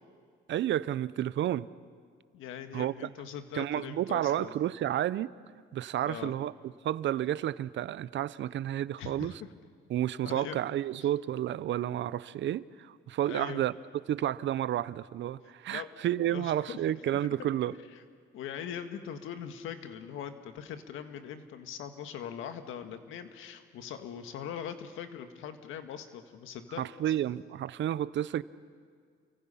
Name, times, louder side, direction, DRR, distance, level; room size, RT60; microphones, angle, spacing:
voice 1, 0.5-1.7 2.7-3.1 3.5-5.3 5.7-6.5 6.8-9.3 9.9-13.7 14.1-17.7 26.8-28.4, right 12 dB, 70° right, 18 dB, 0.7 m, -31 dB
voice 2, 2.3-4.6 6.0-6.3 9.0-9.4 10.2-10.6 13.2-13.6 15.7-15.9 16.3-16.8 17.4-17.5 18.3-26.9, left 8 dB, 90° left, 8 dB, 1.7 m, -41 dB
29.5 x 24.0 x 5.6 m, 2.1 s
cardioid pair, 90°, 20 cm